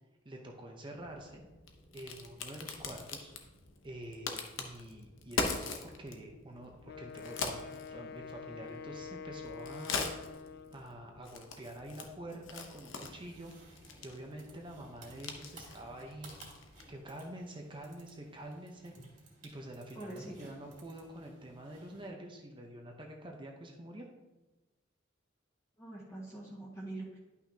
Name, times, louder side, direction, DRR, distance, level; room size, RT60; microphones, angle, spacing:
voice 1, 0.2-1.4 1.9-3.3 3.8-10.1 10.7-16.4 16.9-18.9 19.4-24.1, right 1 dB, 25° right, 1 dB, 0.8 m, -47 dB
Crack, 0.9-17.0, left 4 dB, 70° left, 0.9 m, -43 dB
Wind instrument woodwind instrument, 6.8-10.9, left 6 dB, 50° left, 0.3 m, -46 dB
sound 1, 13.0-22.1, right 2 dB, 40° right, 2.0 m, -58 dB
voice 2, 19.9-20.5 25.8-27.2, right 2 dB, 15° left, -5 dB, 1.6 m, -44 dB
11.0 x 5.9 x 2.8 m, 1.1 s
head